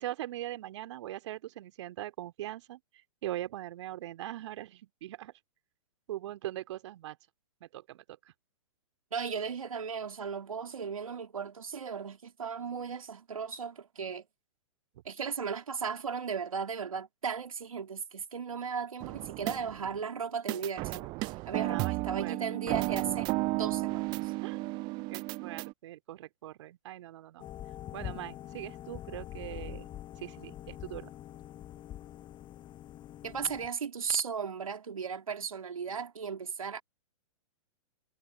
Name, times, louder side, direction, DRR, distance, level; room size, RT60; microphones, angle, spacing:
voice 1, 0.0-2.8 3.2-5.3 6.1-7.2 7.6-8.0 21.6-22.4 24.4-24.6 25.1-27.4 27.9-29.9 30.2-31.1, right 14 dB, 55° right, 2.5 m, -41 dB
voice 2, 9.1-14.3 15.0-24.3 33.2-36.8, right 6 dB, 80° right, 2.8 m, -36 dB
sound 1, 19.0-20.0 20.5-25.7, right 23 dB, 25° right, 0.3 m, -33 dB
sound 2, 27.4-33.7, left 12 dB, 25° left, 7.9 m, -44 dB
figure-of-eight pair, 115°, 18 cm